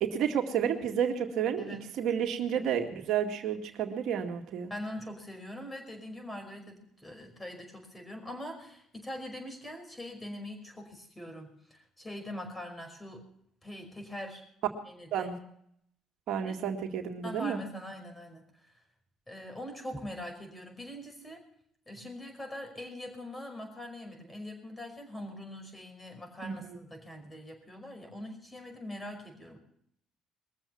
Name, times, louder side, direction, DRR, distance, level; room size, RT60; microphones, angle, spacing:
voice 1, 0.0-4.7 15.1-15.4 16.3-17.6 26.4-26.8, right 8 dB, 65° right, 4 dB, 2.0 m, -31 dB
voice 2, 4.7-13.2 13.6-14.4 14.9-15.3 16.4-16.5 17.2-18.7 19.3-21.4 21.9-29.6, left 1 dB, 15° left, 5 dB, 5.3 m, -43 dB
22.0 x 7.4 x 7.3 m, 0.71 s
cardioid pair, 90°, 0 cm